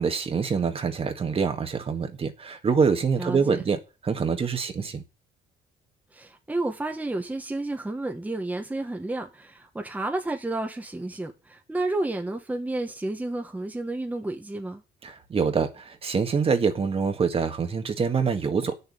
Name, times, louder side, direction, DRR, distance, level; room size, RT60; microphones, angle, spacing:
voice 1, 0.0-5.0 15.0-18.7, right 5 dB, 35° right, 1.7 m, -25 dB
voice 2, 3.2-3.6 6.1-14.8, right 2 dB, 10° right, 1.4 m, -31 dB
8.7 x 7.0 x 8.6 m
cardioid pair, 110°, 17 cm